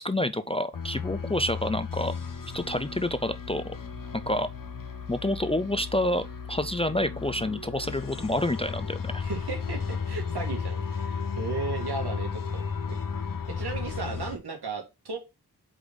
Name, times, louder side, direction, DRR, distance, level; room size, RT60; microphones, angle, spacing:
voice 1, 0.0-2.1 2.5-3.7 4.3-4.5 5.1-9.2, left 1 dB, 15° left, 0.4 m, -28 dB
sound 1, 0.7-14.4, left 5 dB, 55° left, 1.0 m, -34 dB
voice 2, 9.2-13.0 13.5-15.2, right 4 dB, 75° right, 1.9 m, -35 dB
4.9 x 3.9 x 5.1 m
wide cardioid pair, 90°, 39 cm